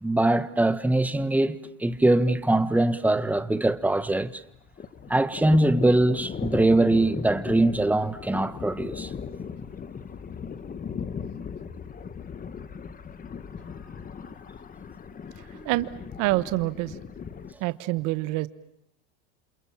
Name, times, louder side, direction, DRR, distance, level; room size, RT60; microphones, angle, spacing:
voice 1, 0.0-4.3 5.1-9.1, right 2 dB, 5° right, 1.4 m, -22 dB
Thunder, 1.9-2.1 2.4-2.5 2.8-4.3 4.5-17.5, left 6 dB, 25° left, 1.6 m, -38 dB
voice 2, 15.4-15.9 16.2-17.0 17.6-18.5, right 20 dB, 60° right, 1.4 m, -27 dB
29.0 x 27.5 x 7.3 m
supercardioid pair, 120°, 34 cm